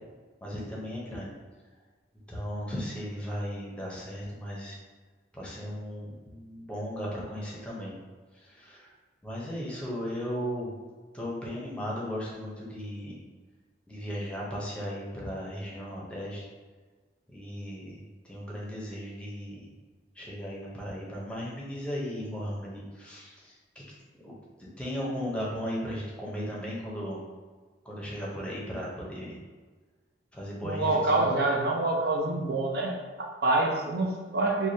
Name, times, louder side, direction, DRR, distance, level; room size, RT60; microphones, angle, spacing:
voice 1, 0.4-1.3 2.3-4.8 5.3-7.9 8.3-8.9 9.2-10.7 11.1-13.2 13.9-16.4 17.3-19.7 20.1-23.8 24.2-24.3 24.6-27.2 27.8-29.4 30.3-31.3, equal, 5° left, -5 dB, 0.7 m, -36 dB
voice 2, 30.6-34.7, right 2 dB, 60° right, 0 dB, 0.5 m, -26 dB
4.7 x 2.2 x 2.7 m, 1.4 s
head